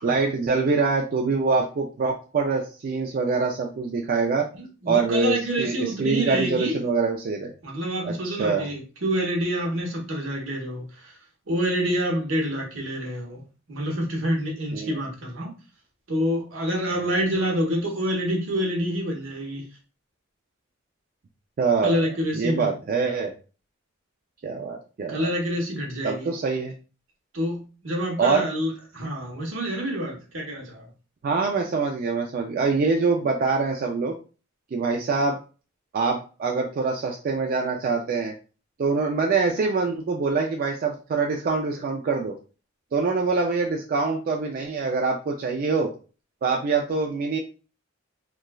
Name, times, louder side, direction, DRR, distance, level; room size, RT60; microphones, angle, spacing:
voice 1, 0.0-4.5 4.9-7.5 8.0-8.7 14.7-15.0 21.6-22.0 22.3-23.3 24.4-25.3 26.0-26.7 28.2-28.5 31.2-34.1 34.7-35.4 35.9-38.3 38.8-42.4 42.9-45.9 46.4-47.4, right 4 dB, 45° right, 0.3 m, -24 dB
voice 2, 4.5-6.8 7.6-11.1 11.5-13.4 13.7-15.5 16.1-19.6 21.8-22.7 25.1-26.3 27.3-30.9, equal, 75° right, 1.0 m, -27 dB
3.0 x 2.3 x 2.3 m
head